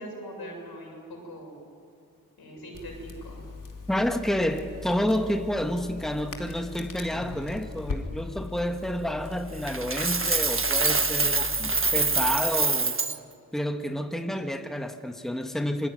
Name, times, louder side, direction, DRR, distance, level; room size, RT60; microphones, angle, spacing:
voice 1, 0.0-1.6 2.4-3.4, equal, 85° left, 7.4 m, -41 dB
Crackle, 2.7-12.3, left 4 dB, 60° left, 3.0 m, -40 dB
voice 2, 3.9-13.0 13.5-15.9, equal, ahead, 1.8 m, -29 dB
Coin (dropping), 9.7-13.2, right 4 dB, 35° right, 1.5 m, -25 dB
26.5 x 20.5 x 9.4 m
cardioid pair, 50°, 36 cm